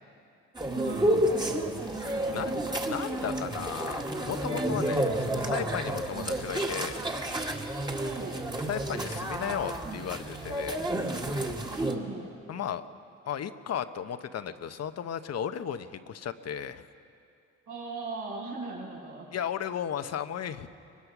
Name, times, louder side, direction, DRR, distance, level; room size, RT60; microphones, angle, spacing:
sound 1, 0.5-11.9, right 1 dB, 15° right, 1.8 m, -30 dB
voice 1, 0.7-1.4 2.4-2.8 6.1-6.4 7.9-8.4 11.7-12.3 17.7-19.3, right 3 dB, 85° right, -4 dB, 7.2 m, -39 dB
voice 2, 2.0-2.5 2.9-7.1 8.7-10.8 12.5-12.8 13.2-16.9 19.3-20.7, left 8 dB, 55° left, 10 dB, 0.9 m, -35 dB
23.0 x 21.0 x 6.0 m, 2.5 s
cardioid pair, 90°, 30 cm